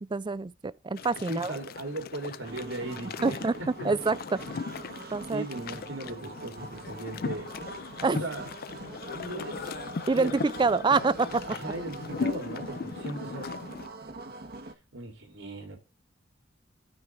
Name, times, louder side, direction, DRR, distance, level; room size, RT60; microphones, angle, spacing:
voice 1, 0.0-1.5 3.2-3.5 3.8-4.4 5.1-5.4 8.0-8.2 10.1-11.4, right 4 dB, 25° right, 0.4 m, -26 dB
sound 1, 1.0-13.9, left 5 dB, 50° left, 0.4 m, -38 dB
voice 2, 1.2-3.9 5.3-7.5 8.1-8.5 9.1-9.7 10.1-10.3 11.5-13.5 14.9-15.8, right 2 dB, 85° right, 3.2 m, -38 dB
sound 2, 2.4-14.7, right 2 dB, 55° right, 1.1 m, -43 dB
12.5 x 4.5 x 3.5 m
head